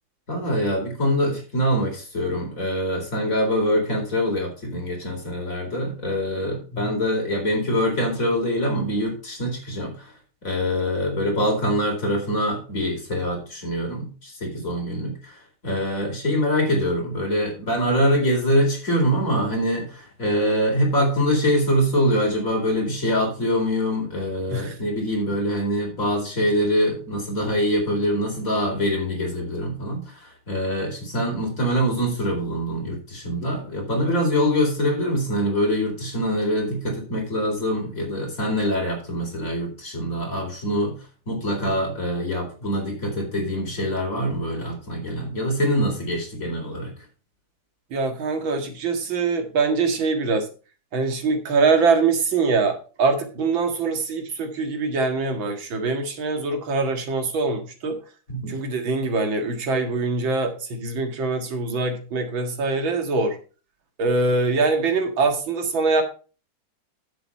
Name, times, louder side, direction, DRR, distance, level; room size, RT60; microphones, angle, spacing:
voice 1, 0.3-10.1 10.4-41.0 41.3-46.9 58.3-58.6, equal, 45° left, 0 dB, 4.5 m, -24 dB
voice 2, 47.9-50.5 50.9-58.0 58.5-63.4 64.0-66.0, right 4 dB, 90° right, 5 dB, 2.5 m, -23 dB
10.0 x 8.1 x 4.3 m, 0.36 s
omnidirectional pair, 2.1 m